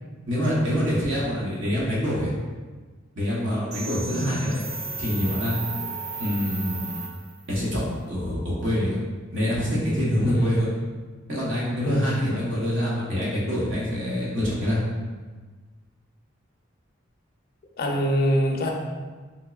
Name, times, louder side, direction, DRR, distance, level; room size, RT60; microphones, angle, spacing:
voice 1, 0.3-2.3 3.2-4.7 5.0-5.6 6.2-6.9 7.5-9.0 9.3-10.7 11.3-14.8, equal, 70° right, -6 dB, 1.0 m, -25 dB
sound 1, 3.7-7.6, right 4 dB, 40° right, 0.5 m, -35 dB
voice 2, 10.2-10.6 11.8-12.3 17.8-18.7, equal, 50° left, 1 dB, 0.5 m, -24 dB
3.7 x 2.9 x 2.3 m, 1.4 s
head